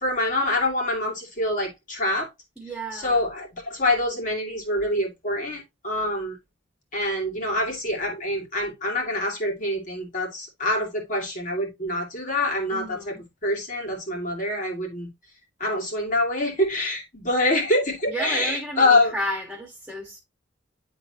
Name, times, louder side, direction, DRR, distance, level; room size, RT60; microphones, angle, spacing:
voice 1, 0.0-2.3 2.9-6.4 6.9-13.2 13.4-15.1 15.6-19.1, left 2 dB, 45° left, 2.4 m, -25 dB
voice 2, 2.6-3.2 12.7-13.2 18.1-20.2, right 1 dB, ahead, 1.5 m, -33 dB
10.0 x 3.9 x 2.8 m
head